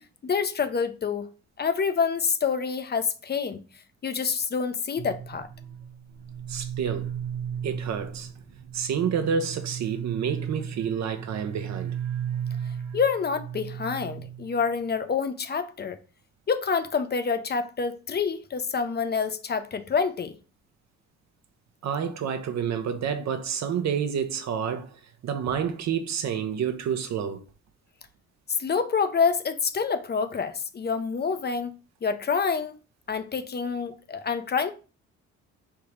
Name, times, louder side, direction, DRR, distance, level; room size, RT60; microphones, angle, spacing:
voice 1, 0.2-1.3 1.6-3.6 4.0-5.5 12.9-16.0 16.5-20.4 28.6-31.7 32.0-32.7 33.1-34.7, left 5 dB, 35° left, 0.6 m, -27 dB
sound 1, 5.0-14.8, right 9 dB, 85° right, 1.0 m, -35 dB
voice 2, 6.5-7.1 7.6-8.3 8.7-11.9 21.8-24.9 25.2-27.4, right 7 dB, 65° right, 0.8 m, -29 dB
3.6 x 2.9 x 4.8 m
cardioid pair, 90°, 30 cm